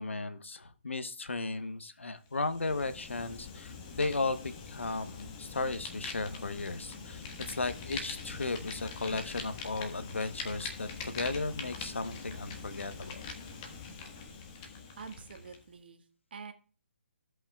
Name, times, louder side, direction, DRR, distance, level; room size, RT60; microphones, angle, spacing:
voice 1, 0.0-13.3, left 3 dB, 85° left, 1.0 m, -35 dB
Fire, 2.3-15.6, left 5 dB, 25° left, 1.4 m, -43 dB
voice 2, 15.0-16.5, right 5 dB, 55° right, 1.5 m, -47 dB
16.5 x 5.6 x 2.3 m
hypercardioid pair, 155°, 6 cm